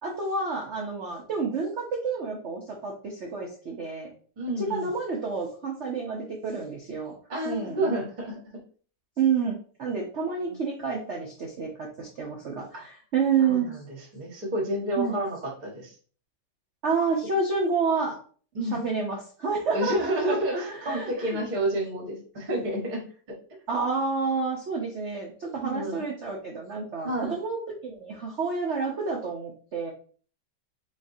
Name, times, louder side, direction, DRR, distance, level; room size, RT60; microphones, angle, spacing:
voice 1, 0.0-4.1 4.6-7.1 7.4-7.9 9.2-13.8 14.9-15.2 16.8-18.2 18.6-21.4 23.7-29.9, right 5 dB, 80° right, -1 dB, 0.6 m, -29 dB
voice 2, 4.4-4.9 7.3-8.4 10.3-10.5 13.4-13.8 14.1-15.9 18.5-18.8 19.7-23.0 25.5-26.0 27.0-27.3, right 1 dB, 30° right, 0 dB, 0.8 m, -29 dB
4.1 x 3.6 x 2.6 m, 0.43 s
omnidirectional pair, 2.2 m